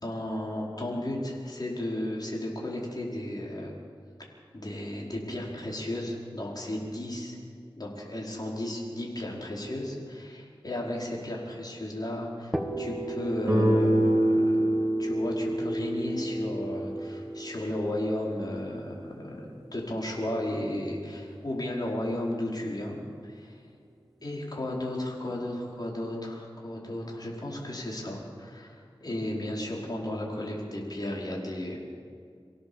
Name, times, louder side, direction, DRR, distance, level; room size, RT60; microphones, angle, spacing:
voice 1, 0.0-3.7 4.5-7.4 7.8-23.6 24.2-31.8, left 1 dB, 45° left, -3 dB, 5.1 m, -34 dB
sound 1, 12.5-20.2, right 1 dB, ahead, 1.9 m, -39 dB
Guitar, 13.5-18.3, right 1 dB, 25° right, 7.2 m, -26 dB
25.5 x 16.5 x 7.3 m, 2.2 s
wide cardioid pair, 60°, 9 cm